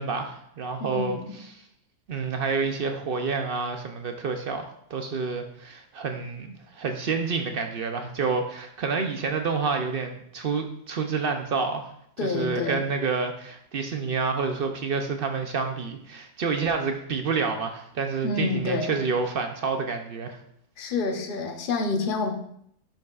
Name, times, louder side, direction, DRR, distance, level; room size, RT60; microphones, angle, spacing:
voice 1, 0.0-1.6 2.1-11.9 12.2-20.4, right 4 dB, 65° right, 5 dB, 0.5 m, -28 dB
voice 2, 0.8-1.3 12.2-12.9 18.2-19.0 20.8-22.3, left 3 dB, 40° left, 3 dB, 0.8 m, -28 dB
10.0 x 5.4 x 2.4 m, 0.70 s
omnidirectional pair, 1.7 m